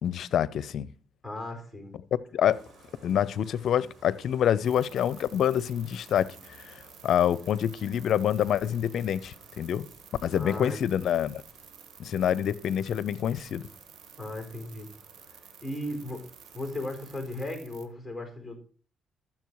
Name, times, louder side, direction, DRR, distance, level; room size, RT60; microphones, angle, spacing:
voice 1, 0.0-0.9 2.1-2.6 3.0-9.9 10.2-11.4 12.0-13.7, left 9 dB, 70° left, 0.6 m, -27 dB
voice 2, 1.2-1.9 10.3-10.8 14.2-14.9 15.6-16.2 16.5-18.6, left 1 dB, ahead, 4.6 m, -36 dB
Bathtub (filling or washing), 2.5-17.5, right 2 dB, 45° right, 4.4 m, -57 dB
sound 1, 4.6-17.9, right 8 dB, 75° right, 1.5 m, -53 dB
13.5 x 7.4 x 4.7 m
cardioid pair, 90°, 0 cm